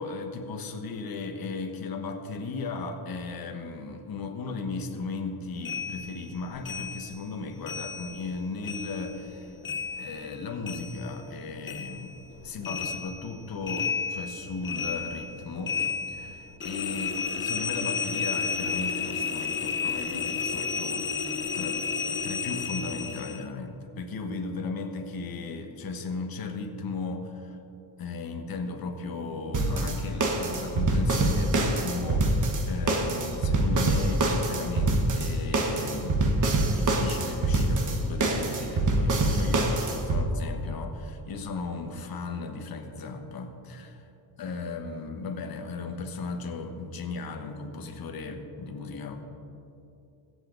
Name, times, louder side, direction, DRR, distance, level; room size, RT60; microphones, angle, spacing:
voice 1, 0.0-9.6 9.9-15.8 16.1-21.1 21.4-27.6 28.0-36.4 36.7-44.0 44.4-49.2, left 4 dB, 45° left, 4 dB, 1.3 m, -36 dB
sound 1, 5.6-8.4 8.6-11.4 11.6-23.4, left 5 dB, 25° left, 0.7 m, -32 dB
sound 2, 29.5-40.2, right 2 dB, 40° right, 1.3 m, -25 dB
22.5 x 8.3 x 3.9 m, 2.9 s
cardioid pair, 165°, 49 cm